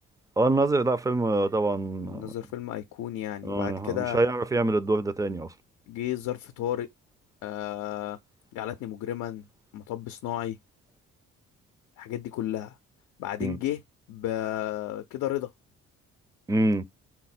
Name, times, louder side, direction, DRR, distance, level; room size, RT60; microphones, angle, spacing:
voice 1, 0.4-2.3 3.4-5.5 13.4-13.6 16.5-16.8, right 2 dB, 10° right, 0.4 m, -25 dB
voice 2, 2.0-4.2 5.9-6.9 7.4-8.2 8.5-9.4 9.7-10.6 12.0-12.7 13.2-13.8 14.1-15.5, left 12 dB, 85° left, 0.5 m, -32 dB
4.2 x 2.1 x 4.1 m
cardioid pair, 90°, 30 cm